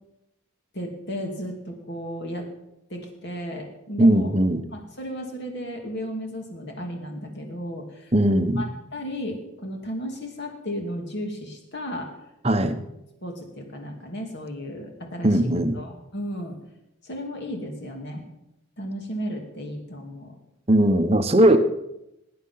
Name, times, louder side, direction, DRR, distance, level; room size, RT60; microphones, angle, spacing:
voice 1, 0.7-2.5 2.9-4.3 4.7-12.1 12.6-12.8 13.2-15.4 15.7-16.6 17.0-18.2 18.8-20.3, equal, 50° left, 2.4 m, -34 dB
voice 2, 4.0-4.6 8.1-8.6 12.4-12.8 15.2-15.8 20.7-21.6, right 1 dB, 25° right, 1.0 m, -19 dB
18.5 x 9.7 x 5.7 m
head